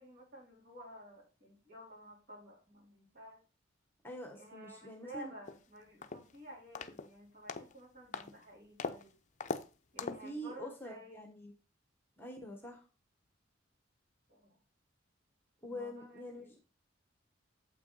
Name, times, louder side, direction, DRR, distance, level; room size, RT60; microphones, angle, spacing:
voice 1, 0.0-3.4 4.4-9.2 9.9-11.3 14.3-14.6 15.7-16.6, right 1 dB, 50° right, -3 dB, 3.8 m, -53 dB
voice 2, 4.0-5.3 10.0-11.5 12.2-12.8 15.6-16.6, equal, 10° left, 3 dB, 1.1 m, -45 dB
sound 1, 5.5-5.6 6.0-6.4 6.8-7.1 7.5-7.7 8.1-8.4 8.8-9.0 9.4-9.7 10.0-10.3, left 4 dB, 35° left, 0.6 m, -40 dB
7.7 x 6.1 x 4.0 m, 0.31 s
head